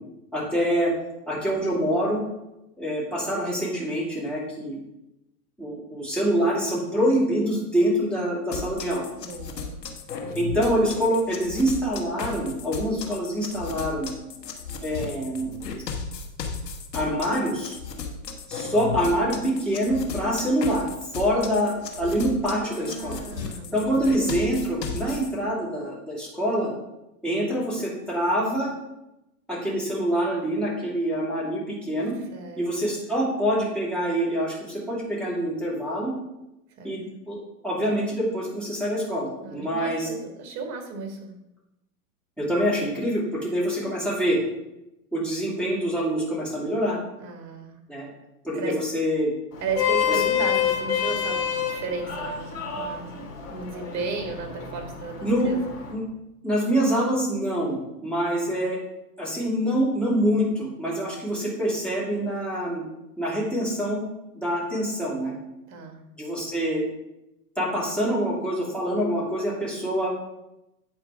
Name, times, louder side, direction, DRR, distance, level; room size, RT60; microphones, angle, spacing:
voice 1, 0.3-0.9 1.3-2.2 2.8-4.8 5.6-9.1 10.3-14.1 14.8-15.5 16.9-17.8 18.5-20.9 21.1-23.2 23.7-26.7 27.2-28.7 29.5-32.1 32.6-36.1 36.8-37.4 37.6-40.1 42.4-44.4 45.1-47.0 47.9-48.1 48.4-49.3 50.1-50.2 55.2-55.5 55.9-56.0 56.4-58.8 59.2-62.9 63.2-64.0 64.3-65.3 66.2-66.8 67.6-70.1, equal, ahead, -7 dB, 2.6 m, -25 dB
sound 1, 8.5-25.3, left 5 dB, 90° left, 1.4 m, -35 dB
voice 2, 9.1-9.8 22.5-24.5 32.2-32.9 36.8-36.9 39.4-41.3 43.8-43.9 47.2-47.8 48.5-48.8 49.6-53.1 53.5-55.6 58.2-58.5 65.7-66.0, right 4 dB, 35° right, 4 dB, 1.7 m, -35 dB
Vehicle horn car horn honking, 49.5-55.9, left 8 dB, 30° left, 2.6 m, -28 dB
8.7 x 4.7 x 4.8 m, 0.92 s
hypercardioid pair, 125°, 48 cm